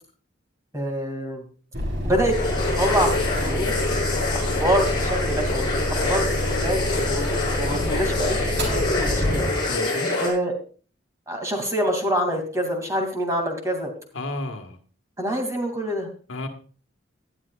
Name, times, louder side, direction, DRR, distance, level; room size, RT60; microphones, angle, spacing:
voice 1, 0.7-1.4 2.0-2.4 2.6-4.0 4.3-9.5 10.2-10.5 11.3-13.9 15.2-16.1, equal, 15° right, 3 dB, 2.5 m, -26 dB
sound 1, 1.7-9.8, equal, 55° right, 4.2 m, -27 dB
sound 2, 2.3-10.3, left 2 dB, 25° left, 5.6 m, -26 dB
voice 2, 9.7-10.1 14.1-14.8 16.3-16.5, left 2 dB, 80° left, 5 dB, 1.6 m, -32 dB
19.0 x 11.0 x 2.4 m, 0.39 s
head